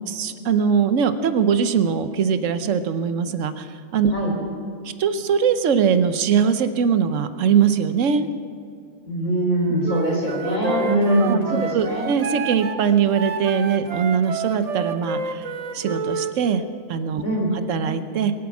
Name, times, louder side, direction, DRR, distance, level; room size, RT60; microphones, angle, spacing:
voice 1, 0.1-4.1 5.0-8.3 11.2-15.5 15.7-16.6 16.9-17.2 17.7-18.3, right 7 dB, 70° right, 11 dB, 1.1 m, -21 dB
voice 2, 9.1-12.0 17.2-17.5, right 1 dB, 85° left, -2 dB, 4.6 m, -22 dB
Wind instrument woodwind instrument, 9.8-16.3, right 5 dB, 40° right, 0.6 m, -29 dB
22.0 x 8.7 x 5.9 m, 2.3 s
omnidirectional pair, 1.4 m